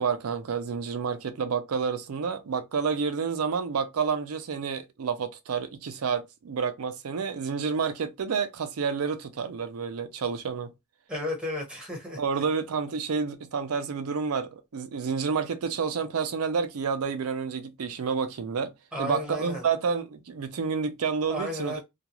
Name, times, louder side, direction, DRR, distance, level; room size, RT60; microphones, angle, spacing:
voice 1, 0.0-10.7 12.2-21.7, right 5 dB, 90° right, 0.5 m, -29 dB
voice 2, 11.1-12.2 18.9-19.6 21.3-21.8, left 1 dB, 5° right, 1.1 m, -33 dB
2.3 x 2.3 x 2.9 m
head